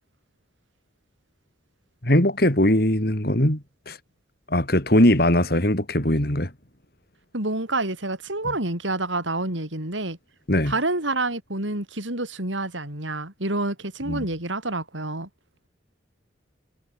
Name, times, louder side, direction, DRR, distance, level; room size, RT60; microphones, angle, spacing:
voice 1, 2.0-4.0 4.5-6.5 8.5-8.6 10.5-10.7 14.1-14.3, left 1 dB, 50° left, 3.6 m, -20 dB
voice 2, 7.3-10.2 10.7-15.3, right 2 dB, 80° right, 6.3 m, -28 dB
head